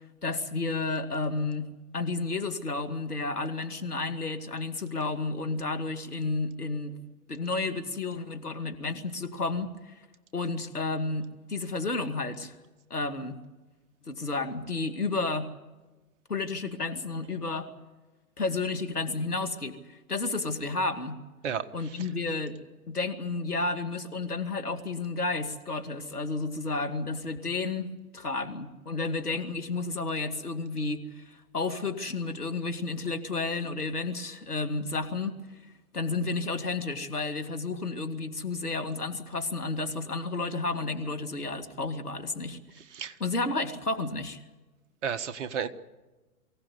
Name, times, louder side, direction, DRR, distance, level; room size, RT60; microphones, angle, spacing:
voice 1, 0.2-7.0 7.3-9.9 10.3-12.5 12.9-13.4 14.1-15.5 16.3-17.7 18.4-21.2 21.7-22.6 22.9-35.3 35.9-42.6 43.2-44.4, left 3 dB, 85° left, 7 dB, 2.5 m, -31 dB
voice 2, 21.4-22.1 42.8-43.2 45.0-45.7, right 7 dB, 50° right, 11 dB, 1.6 m, -33 dB
23.5 x 16.5 x 9.6 m, 1.2 s
figure-of-eight pair, 115°, 45 cm